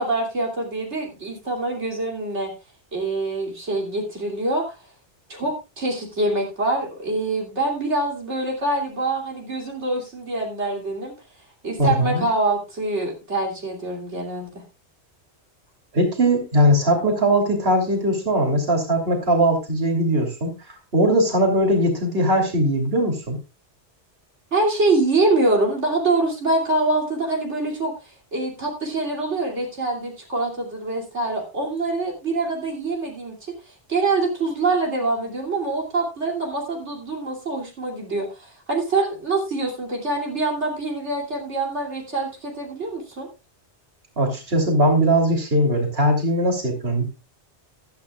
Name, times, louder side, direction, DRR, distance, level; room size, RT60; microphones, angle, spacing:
voice 1, 0.0-2.5 2.9-4.6 5.3-11.1 11.6-14.5 24.5-33.5 33.9-43.3, right 2 dB, 80° right, -1 dB, 3.2 m, -25 dB
voice 2, 11.8-12.3 15.9-23.4 44.2-47.0, right 1 dB, 60° right, 2 dB, 3.3 m, -20 dB
15.0 x 12.5 x 2.4 m, 0.28 s
omnidirectional pair, 1.2 m